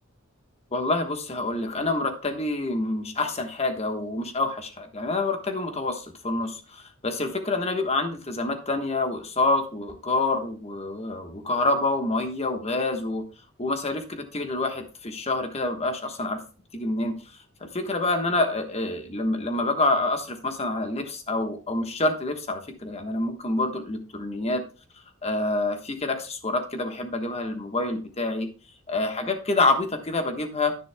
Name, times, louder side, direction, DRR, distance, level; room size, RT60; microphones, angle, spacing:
voice 1, 0.7-13.2 13.6-16.4 16.7-24.6 25.2-28.5 28.9-30.8, left 2 dB, 30° left, 6 dB, 1.2 m, -27 dB
10.0 x 10.0 x 2.2 m, 0.35 s
head